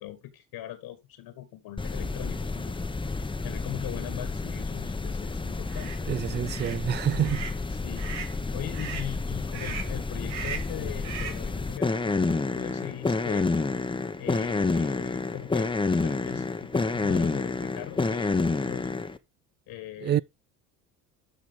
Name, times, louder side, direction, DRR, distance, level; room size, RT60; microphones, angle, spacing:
voice 1, 0.0-2.9 3.4-5.9 7.7-13.5 14.2-18.9 19.7-20.2, left 13 dB, 65° left, 1.8 m, -41 dB
sound 1, 1.8-19.2, left 3 dB, 10° left, 1.0 m, -29 dB
sound 2, 5.7-6.0 6.5-6.8 7.2-7.6 8.0-8.4 8.7-9.1 9.5-10.0 10.3-10.7 11.0-11.5, right 7 dB, 85° right, 2.8 m, -38 dB
voice 2, 6.1-7.4 20.0-20.2, right 10 dB, 25° right, 0.4 m, -27 dB
13.0 x 4.9 x 3.7 m
supercardioid pair, 85°, 40 cm